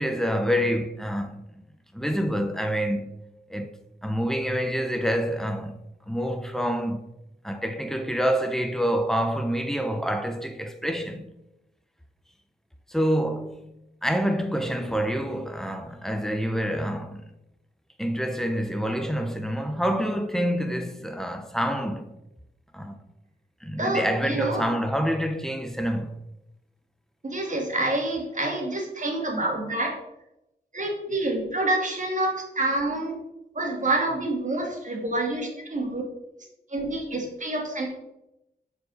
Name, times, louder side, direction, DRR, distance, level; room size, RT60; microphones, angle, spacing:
voice 1, 0.0-1.5 1.9-3.2 3.5-3.7 4.0-5.8 6.1-7.0 7.4-11.3 12.9-13.7 14.0-17.2 18.0-22.2 22.7-23.0 23.6-26.2, equal, ahead, 0.8 m, -27 dB
voice 2, 23.8-24.7 27.2-30.0 30.7-33.2 33.5-36.0 36.7-37.9, right 2 dB, 45° right, 2.1 m, -27 dB
6.4 x 4.9 x 4.0 m
cardioid pair, 55°, 18 cm